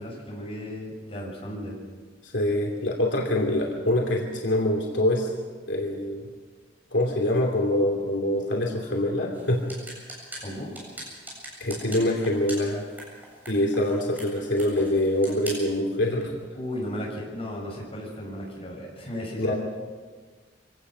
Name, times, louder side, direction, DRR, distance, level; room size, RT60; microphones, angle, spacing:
voice 1, 0.0-1.8 10.4-10.8 16.5-19.6, left 1 dB, 30° left, -3 dB, 7.1 m, -35 dB
voice 2, 2.2-5.3 5.7-6.3 6.9-9.6 11.6-12.8 13.5-16.3 19.4-19.5, left 1 dB, 80° left, 0 dB, 2.7 m, -25 dB
sound 1, 9.3-15.8, right 1 dB, 10° right, 7.7 m, -42 dB
25.0 x 17.5 x 6.3 m, 1.5 s
head